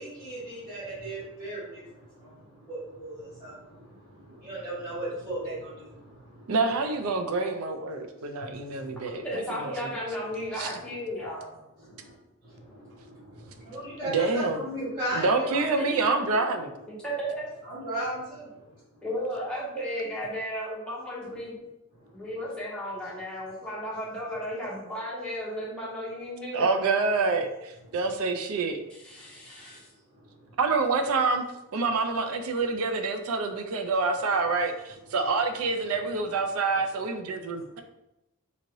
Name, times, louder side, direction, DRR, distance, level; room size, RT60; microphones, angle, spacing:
voice 1, 0.0-6.5 8.4-9.2 11.8-12.1 12.4-15.8 17.6-18.6 22.0-22.2 29.2-29.8 30.1-30.6 37.7-37.8, right 1 dB, 35° right, -11 dB, 1.3 m, -37 dB
voice 2, 6.5-9.9 10.5-10.7 14.0-14.6 15.1-16.7 26.5-28.8 30.6-31.4 31.7-37.8, right 3 dB, 75° right, 6 dB, 0.4 m, -27 dB
voice 3, 9.1-11.5 15.8-16.1 16.9-17.4 19.0-21.6 22.1-26.8 29.0-29.8, equal, 5° left, -7 dB, 0.6 m, -34 dB
3.0 x 2.8 x 2.6 m, 0.91 s
head